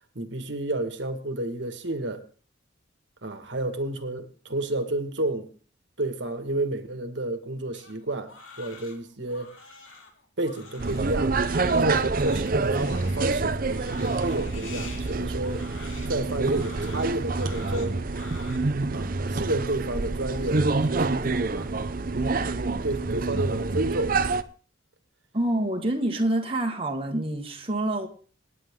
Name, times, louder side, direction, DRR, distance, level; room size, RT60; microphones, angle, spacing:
voice 1, 0.1-2.2 3.2-5.5 6.0-9.5 10.4-11.4 11.6-15.7 16.1-17.9 18.9-21.7 22.8-24.2, right 2 dB, 65° right, 1.8 m, -31 dB
Crying sobbing, 7.7-18.6, left 4 dB, 85° left, 3.5 m, -46 dB
sound 1, 10.8-24.4, right 3 dB, 45° right, 0.7 m, -27 dB
voice 2, 25.3-28.1, right 1 dB, 30° right, 1.6 m, -27 dB
27.5 x 9.4 x 3.7 m
head